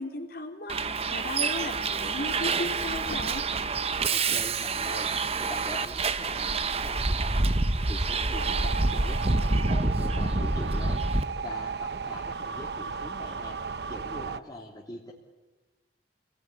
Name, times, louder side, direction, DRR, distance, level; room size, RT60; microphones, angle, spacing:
voice 1, 0.0-3.4, left 2 dB, 60° left, 3 dB, 4.1 m, -36 dB
Bus, 0.7-11.2, right 3 dB, 35° right, 1.1 m, -27 dB
voice 2, 4.1-15.1, left 1 dB, 25° left, -3 dB, 3.3 m, -43 dB
sound 1, 8.3-14.4, right 5 dB, 65° right, 0.8 m, -35 dB
30.0 x 19.5 x 9.8 m, 1.1 s
head